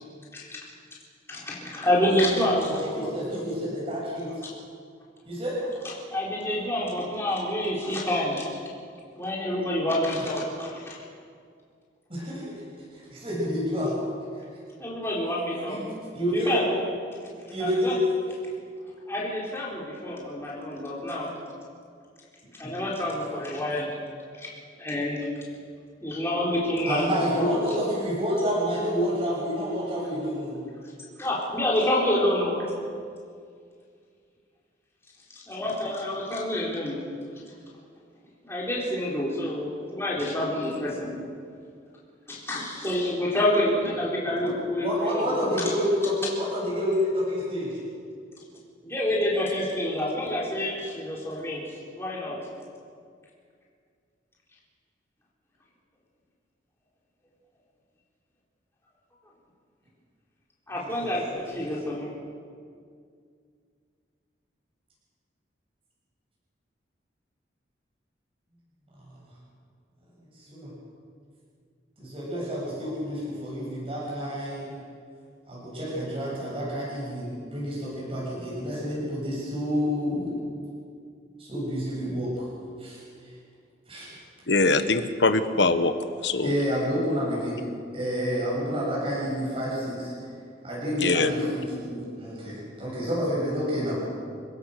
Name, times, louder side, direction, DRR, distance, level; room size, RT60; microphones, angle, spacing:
voice 1, 1.3-3.1 6.1-8.5 9.1-11.0 14.8-15.8 16.3-16.8 17.6-17.9 19.1-21.3 22.6-23.9 24.4-24.5 24.8-25.3 26.0-27.6 31.2-32.6 35.5-37.0 38.4-41.2 42.3-45.7 48.8-51.6 52.0-52.4 60.7-62.2, left 1 dB, 15° left, -5 dB, 4.2 m, -28 dB
voice 2, 3.0-4.3 5.2-5.6 12.1-12.5 12.9-14.0 14.3-14.4 15.7-15.9 16.1-16.5 17.5-18.0 22.6-22.8 26.9-30.6 44.4-44.5 44.8-47.8 60.7-61.6 70.5-70.7 72.0-74.8 75.5-80.3 81.4-82.5 82.8-83.0 83.9-84.1 86.4-87.6 87.9-90.1 90.6-94.0, equal, 30° right, -6 dB, 7.7 m, -29 dB
voice 3, 84.5-85.9 86.2-86.5 91.0-91.3, left 3 dB, 70° left, 10 dB, 1.2 m, -22 dB
28.5 x 16.0 x 6.7 m, 2.2 s
head